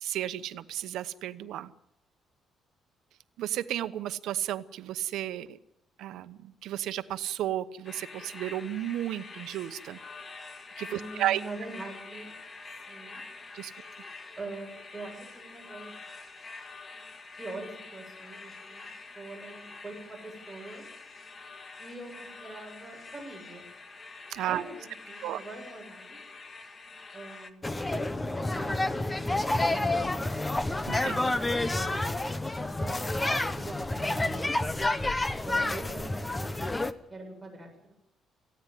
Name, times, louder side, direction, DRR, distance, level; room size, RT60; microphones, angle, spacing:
voice 1, 0.0-1.7 3.4-5.6 6.0-10.0 10.8-11.4 13.5-13.7 24.3-24.6 25.2-25.4 30.9-31.4, right 12 dB, 85° right, 13 dB, 1.0 m, -33 dB
sound 1, 7.8-27.5, left 3 dB, 35° left, 1.9 m, -46 dB
voice 2, 10.8-12.3 12.9-13.2 14.4-15.9 17.4-18.8 19.1-20.8 21.8-23.7 24.4-26.2 27.1-27.7 28.5-30.1 31.7-34.5 35.5-36.7 37.1-37.9, right 2 dB, 10° right, 0 dB, 7.8 m, -43 dB
sound 2, 27.6-36.9, left 2 dB, 15° left, 1.1 m, -29 dB
18.5 x 15.5 x 9.4 m, 0.80 s
cardioid pair, 115°, 0 cm